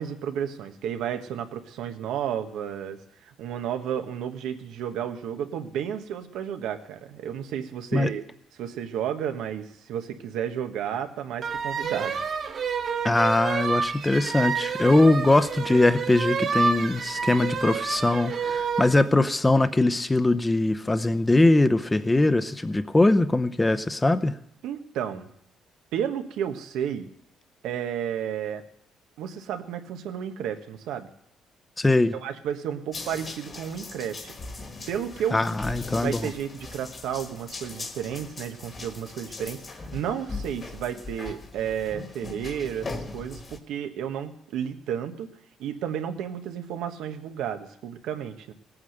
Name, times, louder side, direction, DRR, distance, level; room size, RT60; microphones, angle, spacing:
voice 1, 0.0-8.2 8.6-12.2 24.6-25.3 25.9-27.1 27.6-28.6 29.2-31.1 32.1-34.3 34.9-35.5 36.0-45.3 45.6-48.5, right 9 dB, 90° right, 6 dB, 1.3 m, -32 dB
sound 1, 11.4-18.9, right 5 dB, 45° right, 1.1 m, -29 dB
voice 2, 13.0-24.4 31.8-32.1 35.3-36.2, left 2 dB, 10° left, 12 dB, 0.7 m, -21 dB
sound 2, 32.9-43.6, left 3 dB, 30° left, 1.5 m, -39 dB
18.0 x 8.7 x 6.6 m, 0.71 s
cardioid pair, 135°, 0 cm